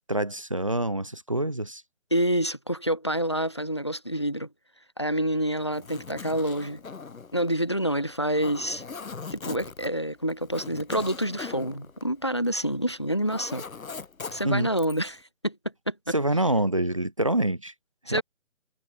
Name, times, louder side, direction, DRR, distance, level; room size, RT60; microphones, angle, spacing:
voice 1, 0.1-1.8 14.4-14.7 16.1-17.7 18.1-18.2, right 1 dB, 25° right, 1.0 m, -26 dB
voice 2, 2.1-4.5 5.0-6.8 7.3-8.8 9.3-13.6 14.3-15.6 15.9-16.1 18.1-18.2, right 1 dB, 20° left, 0.9 m, -27 dB
Zipper (clothing), 5.6-12.7 13.0-15.1, left 5 dB, 85° left, 1.6 m, -41 dB
figure-of-eight pair, 175°, 40 cm